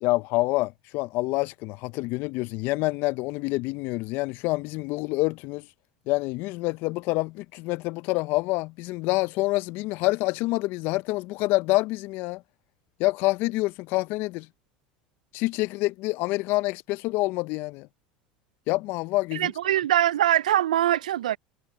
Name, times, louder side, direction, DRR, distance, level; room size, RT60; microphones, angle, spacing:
voice 1, 0.0-5.6 6.1-12.4 13.0-14.5 15.3-17.9 18.7-19.5, left 21 dB, 60° left, 0.6 m, -27 dB
voice 2, 19.3-21.4, right 12 dB, 85° right, 0.4 m, -23 dB
hypercardioid pair, 85°, 4 cm